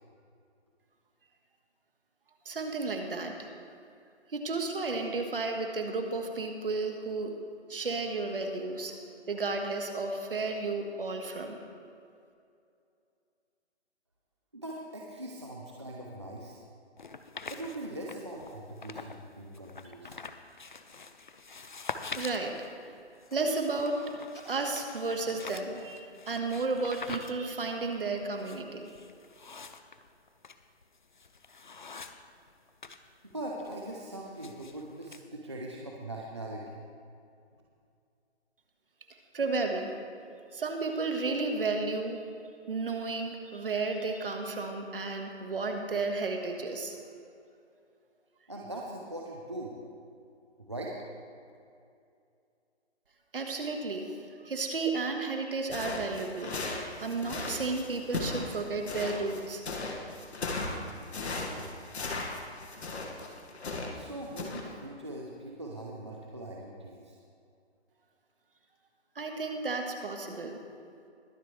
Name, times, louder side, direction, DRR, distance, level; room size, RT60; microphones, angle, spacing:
voice 1, 2.4-3.5 4.3-7.3 7.7-9.0 9.3-11.6 22.1-22.6 23.3-28.9 39.3-40.0 40.5-42.2 42.7-47.0 53.3-54.1 54.4-56.6 57.0-59.6 69.1-70.6, right 3 dB, 55° right, 4 dB, 1.6 m, -33 dB
voice 2, 14.5-16.6 17.5-20.2 33.3-36.8 48.5-49.8 50.6-50.9 63.9-67.2, right 1 dB, 25° right, -2 dB, 0.6 m, -41 dB
sound 1, 17.0-19.2 19.5-33.0 33.3-35.2, left 4 dB, 45° left, 0.5 m, -45 dB
sound 2, 55.7-64.0 64.4-64.6, left 3 dB, 70° left, 1.9 m, -36 dB
21.5 x 7.8 x 3.3 m, 2.5 s
hypercardioid pair, 180°, 34 cm